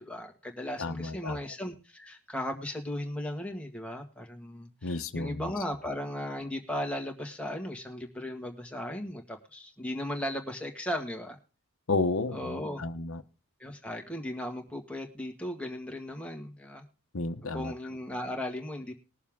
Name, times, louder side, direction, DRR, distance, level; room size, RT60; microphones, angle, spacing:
voice 1, 0.0-11.4 12.3-12.8 13.6-16.8 17.5-18.9, left 1 dB, 5° left, 1.7 m, -36 dB
voice 2, 0.8-1.4 4.8-5.5 11.9-13.2 17.1-17.7, left 3 dB, 70° left, 1.0 m, -32 dB
20.5 x 7.1 x 3.6 m
head